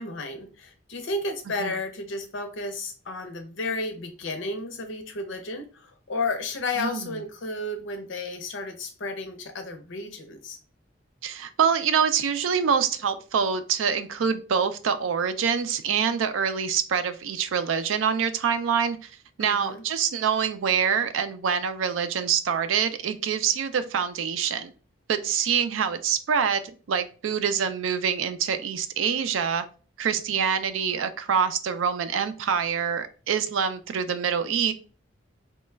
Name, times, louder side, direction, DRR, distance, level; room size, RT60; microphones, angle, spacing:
voice 1, 0.0-10.6 19.4-19.8, left 2 dB, 80° left, 0.7 m, -32 dB
voice 2, 6.8-7.1 11.2-19.1 19.4-24.7 25.1-29.6 30.0-34.7, right 7 dB, 90° right, 0.4 m, -25 dB
3.0 x 2.2 x 3.3 m
head